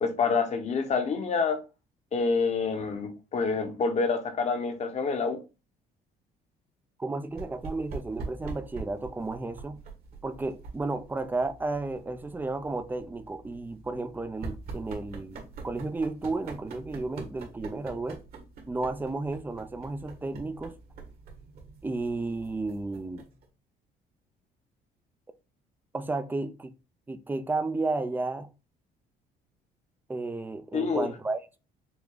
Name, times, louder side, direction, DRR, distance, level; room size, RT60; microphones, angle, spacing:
voice 1, 0.0-1.6 2.1-5.4 30.7-31.1, left 4 dB, 40° left, 1.1 m, -27 dB
voice 2, 7.0-9.8 10.2-18.2 18.7-20.7 21.8-23.3 25.9-26.7 27.1-28.5 30.1-31.6, right 3 dB, 10° right, 0.5 m, -33 dB
sound 1, 7.3-23.4, right 4 dB, 60° right, 1.7 m, -44 dB
6.1 x 2.3 x 3.8 m
cardioid pair, 110°, 17 cm